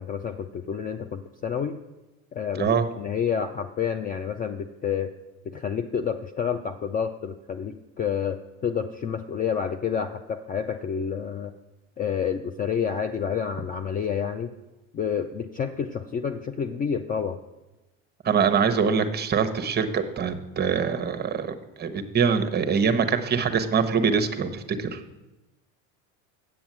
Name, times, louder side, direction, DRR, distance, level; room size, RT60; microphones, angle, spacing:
voice 1, 0.0-1.8 2.3-5.1 5.5-11.5 12.0-14.5 14.9-17.4, left 7 dB, 20° left, 8 dB, 0.4 m, -29 dB
voice 2, 2.6-2.9 18.2-25.0, right 6 dB, 25° right, 8 dB, 0.9 m, -24 dB
8.3 x 7.0 x 7.4 m, 1.0 s
supercardioid pair, 110°, 40 cm